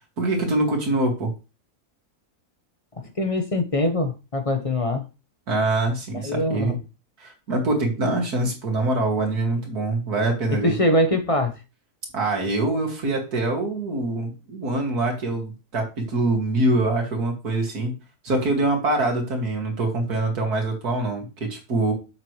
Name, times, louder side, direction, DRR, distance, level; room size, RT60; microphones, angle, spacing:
voice 1, 0.2-1.3 5.5-6.8 7.2-10.7 12.1-17.9 18.2-21.9, right 2 dB, 75° right, 2.7 m, -24 dB
voice 2, 3.0-5.1 6.2-6.8 10.6-11.6, left 1 dB, 25° left, 0.9 m, -23 dB
7.5 x 6.3 x 3.1 m
omnidirectional pair, 1.6 m